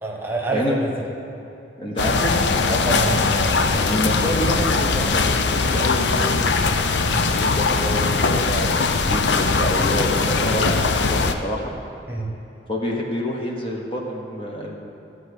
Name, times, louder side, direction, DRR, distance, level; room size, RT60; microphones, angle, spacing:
voice 1, 0.0-0.9 2.6-3.9 7.0-7.2 12.1-12.3, right 1 dB, 10° right, -1 dB, 1.3 m, -27 dB
voice 2, 1.8-2.3 3.8-6.5 7.3-11.7 12.7-14.7, equal, 30° left, -1 dB, 1.2 m, -27 dB
sound 1, 2.0-11.3, left 4 dB, 80° left, 0.6 m, -20 dB
14.5 x 4.9 x 8.4 m, 2.9 s
head